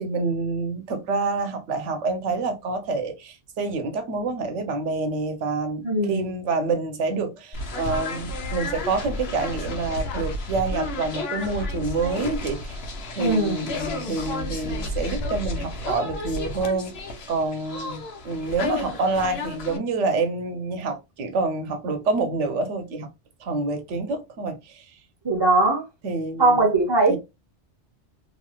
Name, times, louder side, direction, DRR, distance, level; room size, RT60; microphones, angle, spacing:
voice 1, 0.0-12.8 13.1-23.1 23.4-24.8 26.0-26.6 27.1-27.2, right 3 dB, 85° right, 1.1 m, -27 dB
voice 2, 5.8-6.3 13.2-13.6 25.2-25.8 26.4-27.2, right 2 dB, 25° right, 0.7 m, -20 dB
sound 1, 7.5-19.8, left 2 dB, 65° left, 0.9 m, -32 dB
3.1 x 2.7 x 2.3 m
omnidirectional pair, 1.2 m